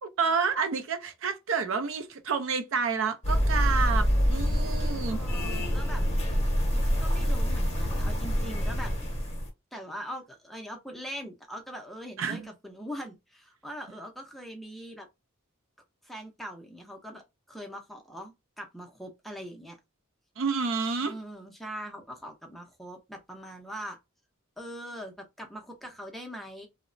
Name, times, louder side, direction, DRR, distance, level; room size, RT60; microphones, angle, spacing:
voice 1, 0.0-5.2 12.2-12.5 20.4-21.1, right 5 dB, 65° right, 0.4 m, -29 dB
sound 1, 3.2-9.5, equal, 30° left, 0.7 m, -26 dB
voice 2, 5.1-6.0 7.0-8.9 9.7-15.1 16.0-19.8 21.0-24.0 24.6-26.7, equal, ahead, 0.5 m, -42 dB
2.9 x 2.0 x 2.5 m
head